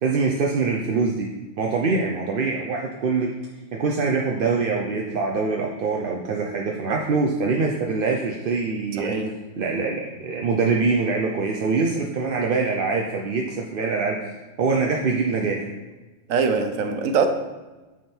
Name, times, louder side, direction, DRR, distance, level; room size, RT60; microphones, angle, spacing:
voice 1, 0.0-3.3 3.7-9.2 9.6-14.2 14.6-15.7, right 4 dB, 55° right, 0 dB, 0.7 m, -24 dB
voice 2, 9.0-9.4 16.3-17.3, right 5 dB, 85° right, 7 dB, 1.1 m, -23 dB
9.1 x 3.6 x 4.4 m, 1.2 s
omnidirectional pair, 1.4 m